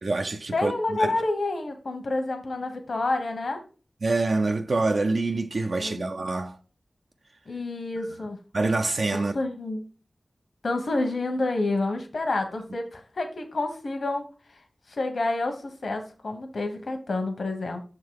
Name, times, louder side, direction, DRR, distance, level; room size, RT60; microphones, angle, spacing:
voice 1, 0.0-1.1 4.0-6.6 8.5-9.3, right 3 dB, 75° right, 0.4 m, -26 dB
voice 2, 0.5-3.6 5.8-6.0 7.5-8.4 9.1-9.8 10.6-14.6 14.9-17.8, left 2 dB, 80° left, 1.0 m, -29 dB
6.4 x 3.7 x 4.6 m
cardioid pair, 45°, 0 cm